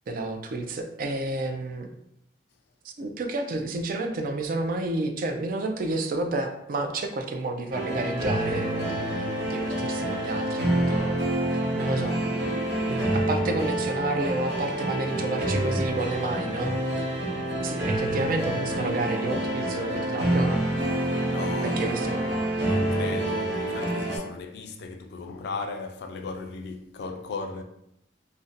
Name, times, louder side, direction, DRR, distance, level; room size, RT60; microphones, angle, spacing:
voice 1, 0.1-1.9 2.8-11.2 11.5-12.2 12.9-17.0 17.6-20.7 21.6-22.4, right 2 dB, 50° right, 0.4 m, -30 dB
sound 1, 7.7-24.2, right 1 dB, 80° right, 1.3 m, -27 dB
voice 2, 21.3-21.9 22.6-27.6, left 4 dB, 65° left, 0.4 m, -36 dB
2.5 x 2.1 x 3.8 m
head